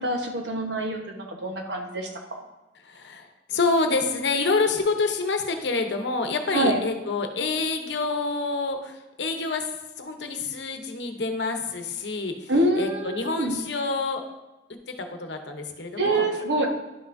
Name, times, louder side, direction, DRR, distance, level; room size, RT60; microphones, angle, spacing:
voice 1, 0.0-2.1 6.5-6.8 12.5-13.6 16.0-16.7, right 1 dB, 80° right, 2 dB, 1.0 m, -25 dB
voice 2, 2.8-9.7 10.0-14.2 14.7-16.3, left 3 dB, 75° left, 5 dB, 0.8 m, -27 dB
11.5 x 5.7 x 2.6 m, 1.0 s
head